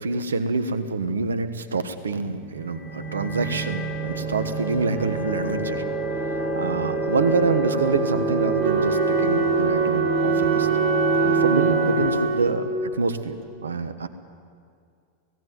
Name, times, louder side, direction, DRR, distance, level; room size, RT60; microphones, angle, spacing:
voice 1, 0.0-5.8 6.2-10.7 11.2-14.1, right 4 dB, 80° right, 11 dB, 1.3 m, -26 dB
sound 1, 2.5-12.1, right 2 dB, 35° left, 4.5 m, -26 dB
Wind instrument woodwind instrument, 8.6-13.0, right 5 dB, 50° right, 2.2 m, -24 dB
18.0 x 16.5 x 9.4 m, 2.2 s
hypercardioid pair, 95°, 0 cm